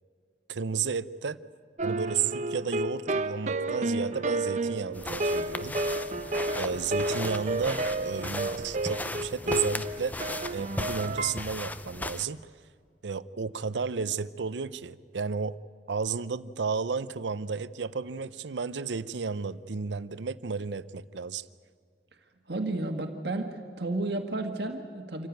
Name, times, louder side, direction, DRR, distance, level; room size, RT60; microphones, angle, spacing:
voice 1, 0.5-1.4 1.8-5.8 6.5-10.2 10.5-12.4 13.0-15.6 15.9-21.5, right 5 dB, 90° right, 16 dB, 0.6 m, -32 dB
sound 1, 1.8-11.3, right 2 dB, 45° right, 0.8 m, -31 dB
sound 2, 4.9-12.2, left 1 dB, 10° left, 0.5 m, -37 dB
voice 2, 22.5-25.3, right 2 dB, 65° right, 5 dB, 1.6 m, -32 dB
26.0 x 15.0 x 9.3 m, 2.1 s
head